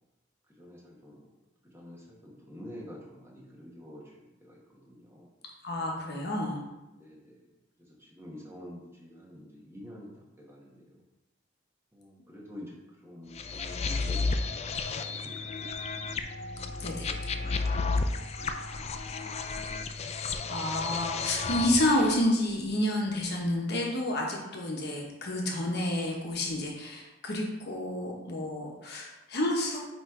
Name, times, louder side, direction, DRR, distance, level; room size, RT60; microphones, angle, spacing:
voice 1, 0.6-1.2 1.6-5.3 7.0-7.5 7.9-10.1 10.4-11.0 11.9-12.8 13.0-16.1 16.7-18.8 19.2-19.3, equal, 15° right, -4 dB, 1.3 m, -48 dB
voice 2, 5.6-6.6 16.8-17.1 20.1-29.8, left 1 dB, 55° left, -1 dB, 1.0 m, -30 dB
sound 1, 13.4-22.2, left 4 dB, 35° left, 0.3 m, -32 dB
8.6 x 3.1 x 3.7 m, 1.0 s
head